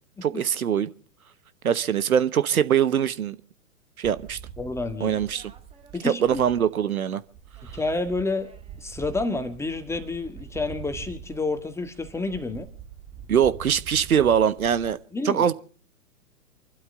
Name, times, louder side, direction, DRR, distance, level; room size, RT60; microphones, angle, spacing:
voice 1, 0.2-0.9 1.6-3.4 4.0-4.4 5.0-5.5 6.0-7.2 13.3-15.0 15.2-15.5, right 8 dB, 70° right, 1.3 m, -22 dB
sound 1, 4.0-6.9 7.2-14.9, right 8 dB, 15° right, 1.7 m, -43 dB
voice 2, 4.6-5.2 5.9-6.4 7.7-8.5 8.8-12.7 15.1-15.5, left 3 dB, 5° left, 1.7 m, -29 dB
28.0 x 12.5 x 3.7 m
figure-of-eight pair, 120°, 44 cm